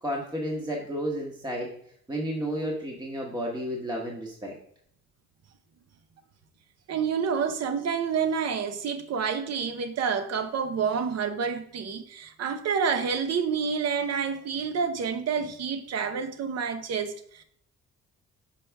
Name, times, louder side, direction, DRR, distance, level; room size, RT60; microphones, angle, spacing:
voice 1, 0.0-1.7 2.1-4.5, equal, 15° right, 1.2 m, -32 dB
voice 2, 6.9-17.4, right 6 dB, 55° right, 0.8 m, -28 dB
6.0 x 4.6 x 3.4 m
cardioid pair, 90°, 30 cm